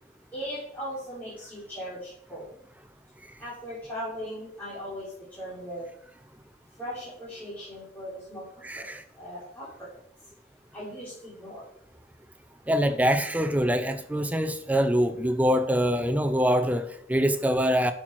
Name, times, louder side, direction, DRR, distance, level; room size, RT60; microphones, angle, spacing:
voice 1, 0.3-2.5 3.4-5.9 6.7-9.9 10.2-10.3 10.7-11.7, equal, 10° left, 3.3 m, -39 dB
voice 2, 8.6-9.0 12.7-17.9, equal, 10° right, 0.5 m, -24 dB
11.5 x 5.9 x 4.6 m
head